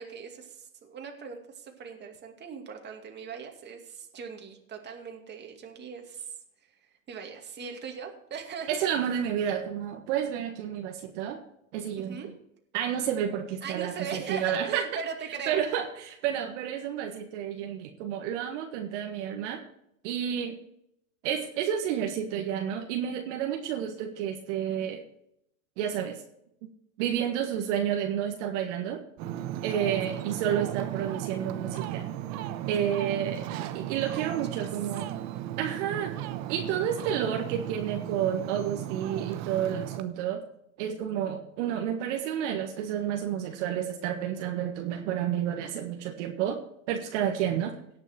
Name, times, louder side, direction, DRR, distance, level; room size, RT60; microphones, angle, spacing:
voice 1, 0.0-6.3 6.6-6.7 7.1-8.9 12.0-12.3 13.6-15.7 30.1-30.2 34.1-34.7, right 6 dB, 25° right, 3 dB, 2.4 m, -40 dB
voice 2, 8.7-11.4 11.7-12.2 12.7-14.8 15.5-19.6 20.0-20.6 21.2-25.0 25.8-26.2 27.0-29.0 29.6-32.1 32.7-35.2 35.6-36.2 36.5-40.4 40.8-46.6 46.9-47.8, right 9 dB, 55° right, 3 dB, 1.7 m, -30 dB
Ocean, 29.2-40.0, right 12 dB, 40° right, 0.9 m, -35 dB
18.0 x 6.2 x 4.4 m, 0.75 s
hypercardioid pair, 115°, 43 cm